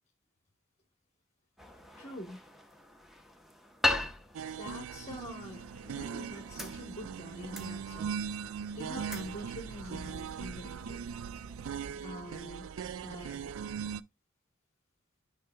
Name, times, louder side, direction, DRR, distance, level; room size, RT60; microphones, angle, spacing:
sound 1, 1.6-11.7, left 2 dB, ahead, 0.8 m, -40 dB
voice 1, 1.9-2.4 4.6-11.0 12.0-12.7 12.9-13.5, left 1 dB, 35° left, 1.1 m, -45 dB
sound 2, 4.3-14.0, right 7 dB, 75° right, 0.3 m, -40 dB
sound 3, 5.5-12.4, left 1 dB, 35° right, 1.4 m, -57 dB
9.3 x 5.7 x 2.2 m
head